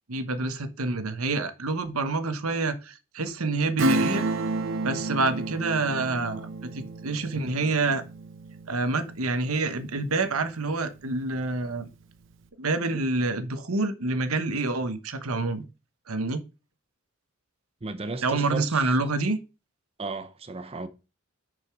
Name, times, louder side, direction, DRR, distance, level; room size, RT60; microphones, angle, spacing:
voice 1, 0.1-4.2 4.8-8.0 8.7-11.9 12.6-15.7 16.1-16.4 18.2-19.4, right 3 dB, 85° right, 1.1 m, -27 dB
Acoustic guitar / Strum, 3.8-10.0 10.4-10.5, right 2 dB, 60° right, 1.0 m, -30 dB
voice 2, 17.8-18.9 20.0-20.9, right 3 dB, 25° right, 0.7 m, -34 dB
6.9 x 5.3 x 4.7 m
head